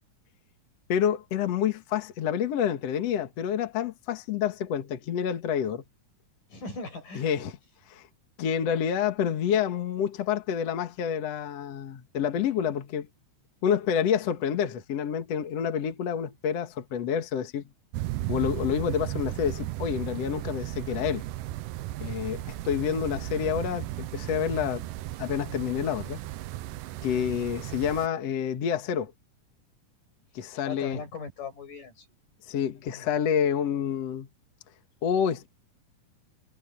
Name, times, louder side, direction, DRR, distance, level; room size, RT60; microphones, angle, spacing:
voice 1, 0.9-5.8 7.2-7.6 7.9-8.1 8.4-13.1 13.6-17.6 18.3-21.2 22.0-24.8 25.2-26.2 27.0-29.1 30.3-31.0 32.5-34.3 35.0-35.5, left 8 dB, 60° left, 2.5 m, -28 dB
voice 2, 6.5-7.3 30.6-32.1 32.9-33.1, left 4 dB, 90° left, 8.4 m, -39 dB
sound 1, 17.9-28.1, right 16 dB, 90° right, 2.4 m, -35 dB
omnidirectional pair, 3.6 m